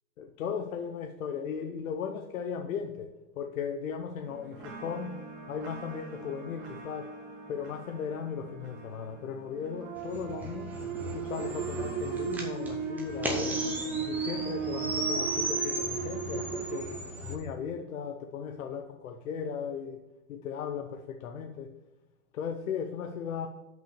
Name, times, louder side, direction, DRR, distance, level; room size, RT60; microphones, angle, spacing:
voice 1, 0.2-3.1 3.4-5.2 5.5-7.1 7.5-10.8 11.1-13.6 14.1-16.9 17.2-20.0 20.3-21.7 22.3-23.5, left 7 dB, 70° left, 4 dB, 0.8 m, -37 dB
sound 1, 4.2-16.8, right 6 dB, 25° right, 1.6 m, -37 dB
sound 2, 10.0-17.4, right 1 dB, 5° right, 0.6 m, -36 dB
6.1 x 5.3 x 6.9 m, 1.0 s
hypercardioid pair, 145°, 42 cm